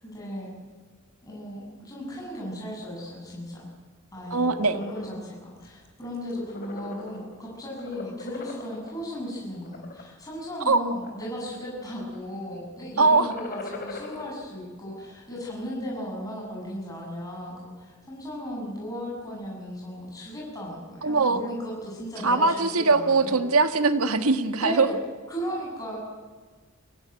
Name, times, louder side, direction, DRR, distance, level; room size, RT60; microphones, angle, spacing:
voice 1, 0.0-0.5 1.2-3.7 4.1-4.5 4.7-23.4 24.6-25.0 25.3-26.0, equal, 15° left, -5 dB, 7.4 m, -36 dB
sound 1, 4.2-5.2 5.6-5.9 6.2-7.4 7.8-8.9 9.5-10.0 10.6-11.4 11.6-12.2 13.0-14.3, left 3 dB, 45° left, 4.0 m, -40 dB
voice 2, 4.3-4.8 10.7-10.8 13.0-13.3 21.0-21.4 22.2-24.9, right 3 dB, 75° right, 9 dB, 1.6 m, -21 dB
23.5 x 17.5 x 9.3 m, 1.4 s
head